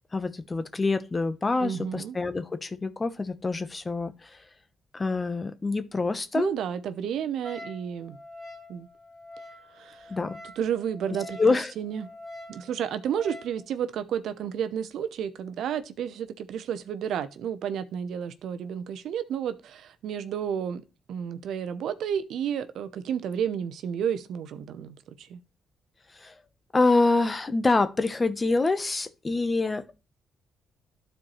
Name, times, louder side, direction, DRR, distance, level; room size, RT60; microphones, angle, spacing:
voice 1, 0.1-4.4 4.9-6.5 10.1-10.4 11.4-11.7 26.1-26.3 26.7-30.0, left 3 dB, 25° left, 0.9 m, -26 dB
voice 2, 1.6-2.2 6.3-8.2 8.7-8.9 9.7-10.1 10.6-12.1 12.5-20.8 21.1-25.4, right 8 dB, 75° right, 0.7 m, -31 dB
Wind instrument woodwind instrument, 7.4-13.6, left 1 dB, 20° right, 1.8 m, -45 dB
12.0 x 4.4 x 3.1 m
cardioid pair, 90°, 0 cm